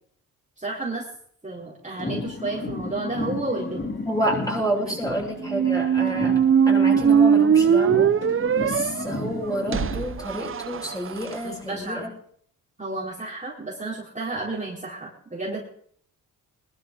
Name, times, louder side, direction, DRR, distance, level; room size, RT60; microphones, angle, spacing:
voice 1, 0.6-1.1 1.4-3.9 4.7-5.2 11.4-12.1 12.8-15.6, right 2 dB, 20° right, -4 dB, 4.5 m, -32 dB
sound 1, 1.9-5.8 6.1-10.0, left 3 dB, 35° left, 5.2 m, -33 dB
voice 2, 4.1-6.4 6.7-8.1 8.6-12.1, equal, 10° left, -2 dB, 7.5 m, -29 dB
sound 2, 5.4-11.3, right 7 dB, 40° right, 0.8 m, -20 dB
21.5 x 12.5 x 3.9 m, 0.62 s
cardioid pair, 75°, 34 cm